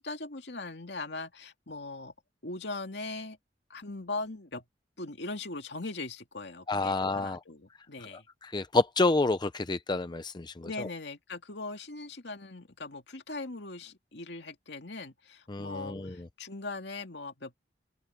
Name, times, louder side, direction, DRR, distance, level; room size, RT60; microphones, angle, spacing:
voice 1, 0.0-2.1 2.4-3.4 3.7-4.6 5.0-8.3 10.6-17.6, left 3 dB, 70° left, 2.4 m, -40 dB
voice 2, 6.7-7.4 8.4-10.9 15.5-16.1, left 2 dB, 25° left, 0.6 m, -28 dB
open air
head